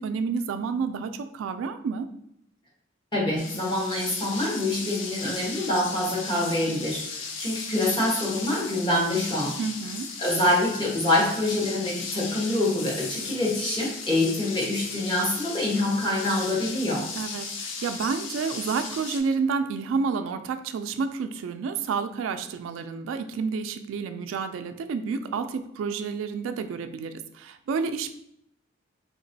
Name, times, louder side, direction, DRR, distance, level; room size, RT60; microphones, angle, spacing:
voice 1, 0.0-2.1 9.6-10.1 17.2-28.1, right 5 dB, 85° right, 10 dB, 0.3 m, -30 dB
voice 2, 3.1-9.6 10.2-17.1, left 1 dB, 25° left, -4 dB, 1.2 m, -26 dB
sound 1, 3.4-19.2, left 5 dB, 70° left, 0.5 m, -36 dB
3.6 x 2.9 x 2.7 m, 0.77 s
head